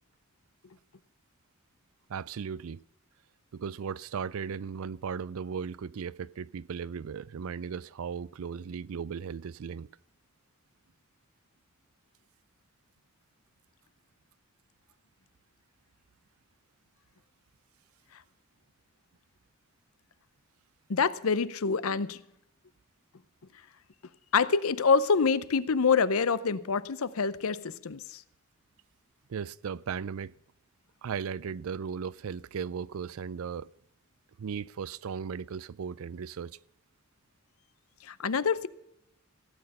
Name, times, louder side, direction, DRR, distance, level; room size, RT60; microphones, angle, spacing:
voice 1, 2.1-2.8 3.5-9.9 29.3-30.3 31.0-33.7 34.4-36.6, right 6 dB, 70° right, 0.4 m, -36 dB
voice 2, 20.9-22.2 24.3-28.2 38.0-38.7, left 5 dB, 70° left, 0.6 m, -26 dB
16.5 x 8.8 x 5.5 m
head